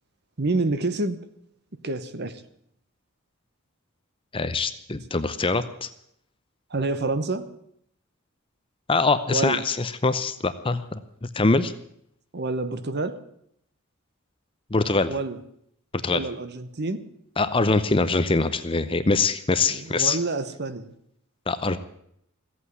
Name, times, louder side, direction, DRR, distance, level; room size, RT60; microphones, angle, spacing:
voice 1, 0.4-1.3 1.8-2.4 6.7-7.5 9.3-9.7 12.3-13.2 15.1-15.4 16.1-17.1 19.7-20.9, right 2 dB, 50° right, 12 dB, 1.0 m, -28 dB
voice 2, 4.3-5.9 8.9-11.0 11.3-11.7 14.7-15.1 16.0-16.2 17.4-20.2 21.5-21.8, left 3 dB, 25° left, 12 dB, 0.6 m, -23 dB
15.0 x 8.5 x 9.5 m, 0.73 s
head